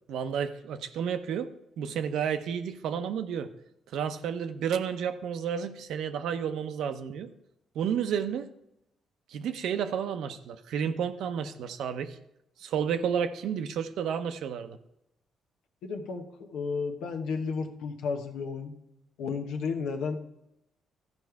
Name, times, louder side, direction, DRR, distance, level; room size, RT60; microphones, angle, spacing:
voice 1, 0.1-1.5 1.8-3.5 3.9-7.3 7.7-8.5 9.3-12.2 12.6-14.8, right 8 dB, 80° right, 9 dB, 0.7 m, -31 dB
voice 2, 15.8-18.7 19.2-20.2, left 5 dB, 85° left, 4 dB, 1.0 m, -33 dB
13.5 x 5.3 x 4.7 m, 0.83 s
cardioid pair, 90°, 0 cm